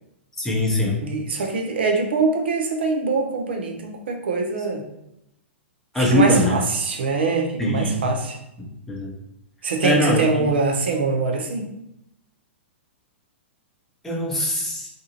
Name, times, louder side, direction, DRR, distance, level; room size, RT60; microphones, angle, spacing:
voice 1, 0.4-1.0 5.9-6.6 7.6-8.0 8.9-9.1 9.8-10.5 14.0-14.9, left 1 dB, 5° left, -4 dB, 0.7 m, -21 dB
voice 2, 1.0-4.8 6.0-8.4 9.6-11.7, right 4 dB, 60° right, 3 dB, 0.5 m, -23 dB
2.6 x 2.3 x 2.8 m, 0.83 s
figure-of-eight pair, 110°, 7 cm